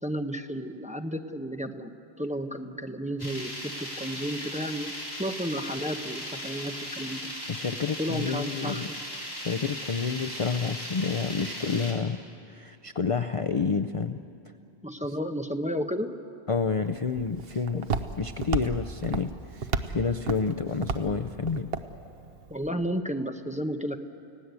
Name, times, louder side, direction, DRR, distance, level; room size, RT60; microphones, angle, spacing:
voice 1, 0.0-4.9 5.2-7.3 8.0-9.0 14.8-16.2 17.7-17.8 22.5-24.0, equal, 5° right, 5 dB, 0.8 m, -32 dB
sound 1, 3.2-11.9, equal, 20° left, 4.0 m, -37 dB
voice 2, 7.5-8.9 9.3-12.2 12.5-14.2 16.5-17.9 18.2-21.7, left 5 dB, 40° left, 9 dB, 0.5 m, -29 dB
Walk footsteps, 16.5-22.7, right 5 dB, 65° right, 1.1 m, -34 dB
30.0 x 17.0 x 8.2 m, 2.7 s
omnidirectional pair, 1.1 m